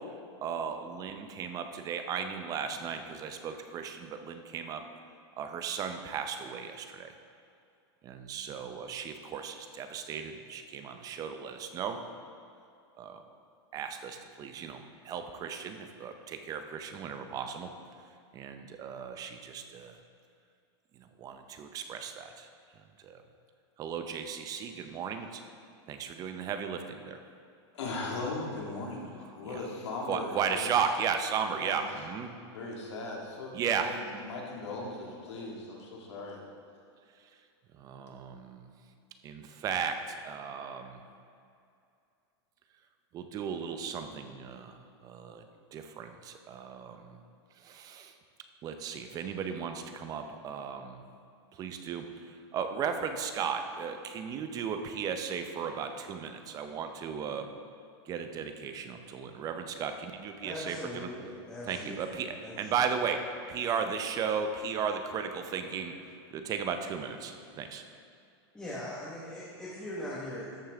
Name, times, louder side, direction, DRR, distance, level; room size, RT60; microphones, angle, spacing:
voice 1, 0.4-4.8 5.4-7.1 8.0-12.0 13.0-13.2 13.7-17.7 18.3-20.0 21.2-22.5 23.0-23.2 23.8-25.4 25.9-27.2 29.5-29.6 30.1-32.3 33.5-34.0 37.8-38.7 39.2-41.0 43.1-45.4 45.7-47.2 47.6-48.1 48.6-51.0 51.6-52.1 52.5-57.5 58.1-60.8 61.7-66.0 66.3-67.8, right 6 dB, 25° right, 7 dB, 0.6 m, -35 dB
voice 2, 27.7-30.9 31.5-31.9 32.5-36.4, left 2 dB, 85° left, -2 dB, 1.9 m, -38 dB
voice 3, 60.4-62.9 68.5-70.5, left 1 dB, 5° left, -8 dB, 1.2 m, -41 dB
13.0 x 5.6 x 3.5 m, 2.5 s
supercardioid pair, 145°, 14 cm